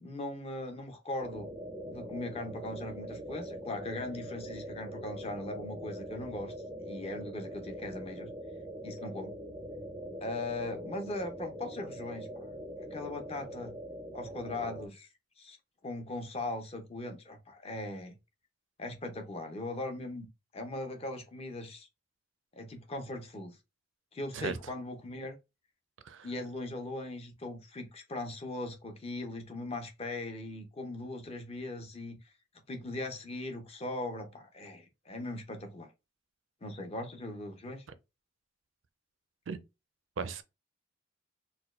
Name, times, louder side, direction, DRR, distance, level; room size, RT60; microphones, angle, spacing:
voice 1, 0.0-1.5 1.8-6.5 6.8-8.3 8.8-9.4 10.2-12.5 12.8-13.7 14.1-15.1 15.4-15.6 15.8-18.2 18.8-20.3 20.5-21.9 22.6-23.6 24.1-25.4 26.2-32.2 32.7-35.9 36.6-37.8, left 2 dB, 30° left, 0.6 m, -39 dB
sound 1, 1.2-14.9, equal, 15° right, 0.4 m, -43 dB
voice 2, 24.3-24.6 26.0-26.3 39.5-39.6 40.2-40.4, right 5 dB, 75° right, 0.4 m, -36 dB
4.2 x 2.2 x 2.4 m
head